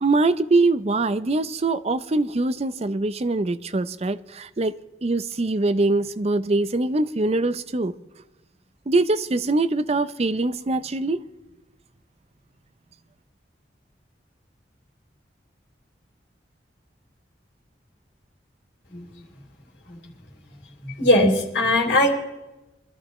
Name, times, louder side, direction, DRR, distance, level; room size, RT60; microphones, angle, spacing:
voice 1, 0.0-4.7 5.0-7.9 8.9-11.3, right 2 dB, 35° right, 0.5 m, -23 dB
voice 2, 20.8-22.1, left 1 dB, 75° left, 3.5 m, -20 dB
24.0 x 13.0 x 3.1 m
head